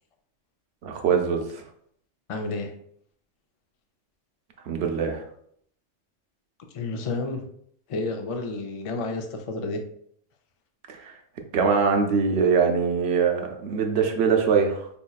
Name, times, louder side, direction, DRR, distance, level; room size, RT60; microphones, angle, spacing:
voice 1, 0.8-1.6 4.6-5.2 10.9-11.1 11.5-14.8, right 6 dB, 70° right, 3 dB, 0.8 m, -23 dB
voice 2, 2.3-2.7 6.7-7.4 7.9-9.8, left 3 dB, 65° left, 4 dB, 0.3 m, -30 dB
4.1 x 2.8 x 2.3 m, 0.66 s
omnidirectional pair, 1.2 m